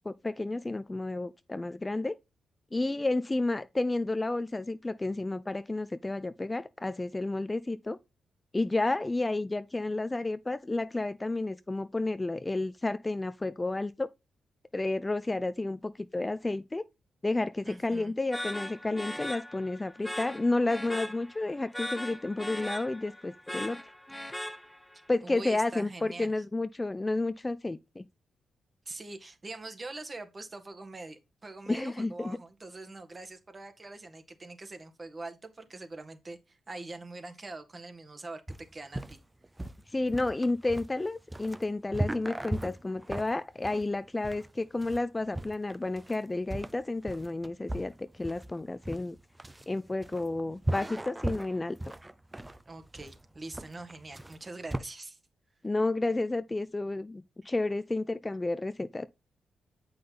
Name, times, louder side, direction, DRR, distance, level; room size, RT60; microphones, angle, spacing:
voice 1, 0.0-2.2 2.7-8.0 8.5-14.1 14.7-16.9 17.2-23.8 25.1-28.1 31.7-32.4 39.9-49.2 49.7-51.8 55.6-59.0, left 2 dB, 25° left, 0.4 m, -31 dB
voice 2, 17.6-18.2 25.2-26.3 28.8-38.4 38.7-39.2 52.6-55.2, right 2 dB, 35° right, 1.6 m, -43 dB
sound 1, 18.3-25.0, left 1 dB, 10° left, 0.9 m, -39 dB
sound 2, 38.5-54.8, right 1 dB, 15° right, 0.7 m, -38 dB
7.6 x 5.6 x 3.9 m
supercardioid pair, 50°, 0 cm